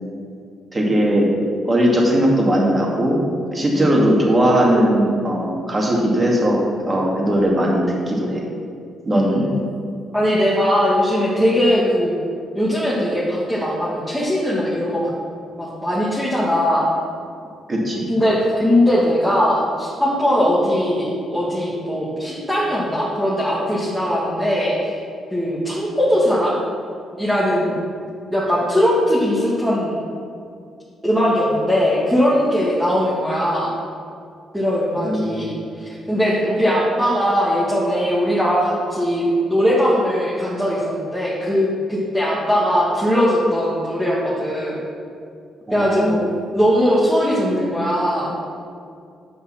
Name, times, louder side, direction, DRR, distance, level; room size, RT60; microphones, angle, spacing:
voice 1, 0.7-1.3 1.6-3.2 3.5-6.6 6.9-8.4 9.1-9.4 17.7-18.1 35.0-35.5 45.7-46.2, equal, 25° right, -2 dB, 2.1 m, -18 dB
voice 2, 9.1-9.6 10.1-12.1 12.6-15.1 15.5-16.9 18.1-24.9 25.3-26.5 27.2-27.8 28.3-30.0 31.0-33.7 34.5-44.8 45.7-46.2 46.5-48.3, equal, ahead, -8 dB, 1.8 m, -20 dB
8.6 x 5.4 x 5.8 m, 2.3 s
cardioid pair, 90°, 0 cm